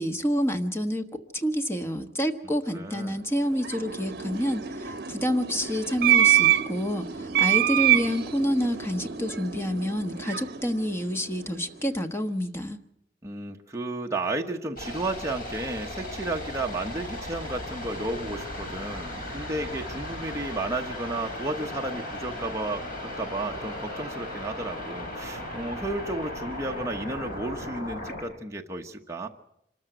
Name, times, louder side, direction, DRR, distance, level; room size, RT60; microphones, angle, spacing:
voice 1, 0.0-12.8, equal, 15° left, 7 dB, 1.3 m, -28 dB
voice 2, 2.7-3.2 13.2-29.3, right 2 dB, 15° right, 1 dB, 1.0 m, -33 dB
sound 1, 3.3-11.8, right 12 dB, 60° right, 1.2 m, -26 dB
sound 2, 14.8-28.2, left 1 dB, 50° left, 5.7 m, -36 dB
25.5 x 14.0 x 8.0 m, 0.76 s
head